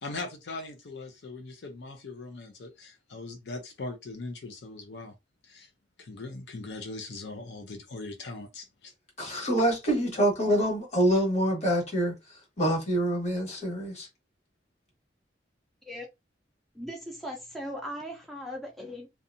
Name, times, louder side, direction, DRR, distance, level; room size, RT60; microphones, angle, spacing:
voice 1, 0.0-5.1 5.4-5.7 6.0-8.9, left 2 dB, 70° left, 0.5 m, -40 dB
voice 2, 9.2-12.1 12.6-14.1, right 1 dB, 40° left, 1.3 m, -26 dB
voice 3, 16.7-19.1, equal, ahead, 0.5 m, -38 dB
2.6 x 2.2 x 2.5 m
head